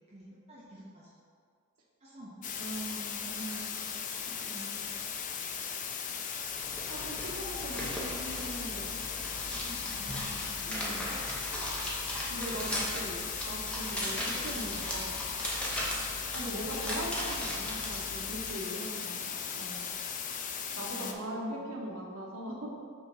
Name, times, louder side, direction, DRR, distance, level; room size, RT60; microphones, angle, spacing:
voice 1, 0.1-1.1 2.0-2.6 9.6-11.3 14.0-14.6 16.1-17.2 20.9-22.3, equal, 30° right, -7 dB, 0.9 m, -50 dB
sound 1, 2.4-21.1, left 7 dB, 35° left, 0.4 m, -38 dB
voice 2, 2.6-3.7 4.3-4.8 6.9-8.9 10.6-11.1 12.3-15.2 16.3-19.9 20.7-22.7, right 1 dB, 65° right, -2 dB, 1.2 m, -40 dB
sound 2, 6.4-18.5, equal, 5° left, 0.9 m, -38 dB
6.0 x 3.7 x 5.7 m, 2.1 s
head